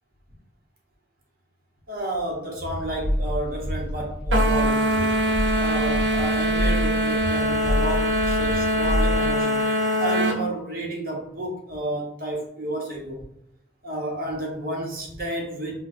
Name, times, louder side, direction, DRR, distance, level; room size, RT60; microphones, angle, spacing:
voice 1, 1.9-5.2 5.6-9.6 10.0-13.2 13.8-15.8, right 1 dB, 50° right, 0 dB, 0.8 m, -31 dB
sound 1, 2.6-9.4, equal, 5° right, 1.1 m, -28 dB
sound 2, 4.3-10.4, equal, 80° right, 0.7 m, -23 dB
5.5 x 2.2 x 2.5 m, 0.77 s
head